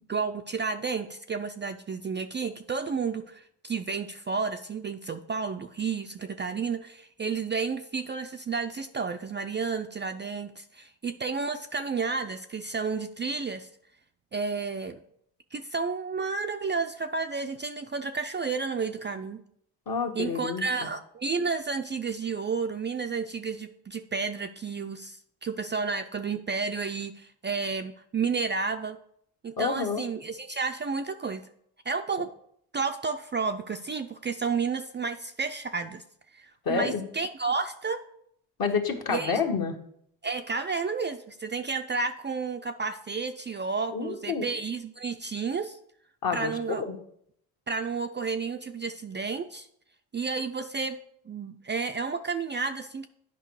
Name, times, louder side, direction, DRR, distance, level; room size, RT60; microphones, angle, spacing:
voice 1, 0.1-13.7 14.3-15.0 15.5-19.4 20.2-29.0 29.4-31.5 31.9-32.3 32.7-36.0 36.3-38.0 39.1-39.4 40.2-45.8 46.3-46.8 47.7-49.7 50.1-51.0 51.3-53.1, right 5 dB, 25° right, 6 dB, 0.4 m, -31 dB
voice 2, 19.9-20.9 29.6-30.0 36.6-37.0 38.6-39.8 43.9-44.4 46.2-47.0, left 5 dB, 50° left, 3 dB, 1.5 m, -29 dB
9.1 x 5.2 x 4.7 m, 0.69 s
supercardioid pair, 75°, 46 cm